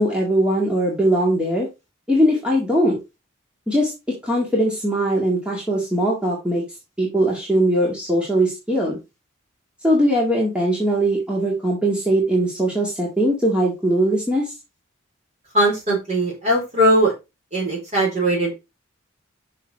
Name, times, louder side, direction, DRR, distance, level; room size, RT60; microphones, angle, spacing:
voice 1, 0.0-1.7 2.1-3.0 3.7-3.9 4.2-6.6 7.0-9.0 9.8-14.5, right 1 dB, 5° right, -3 dB, 1.9 m, -20 dB
voice 2, 15.5-17.1 17.5-18.5, right 1 dB, 35° right, -1 dB, 3.9 m, -19 dB
6.8 x 5.7 x 4.3 m, 0.25 s
head